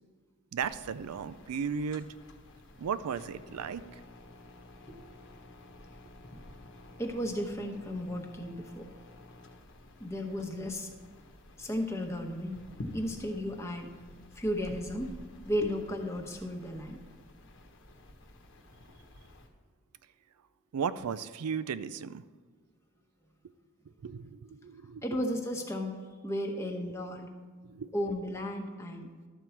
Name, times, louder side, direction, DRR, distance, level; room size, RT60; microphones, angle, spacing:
voice 1, 0.5-2.1 2.8-4.0 20.7-22.2 24.0-25.3 27.6-28.1, right 6 dB, 85° right, 14 dB, 0.4 m, -35 dB
sound 1, 0.6-19.5, left 1 dB, 55° left, 1.1 m, -51 dB
voice 2, 7.0-8.9 10.0-10.9 11.6-12.6 12.9-13.9 14.3-15.1 15.4-17.0 25.0-27.3 27.9-29.1, equal, 15° left, 2 dB, 0.9 m, -34 dB
12.5 x 4.5 x 7.0 m, 1.4 s
head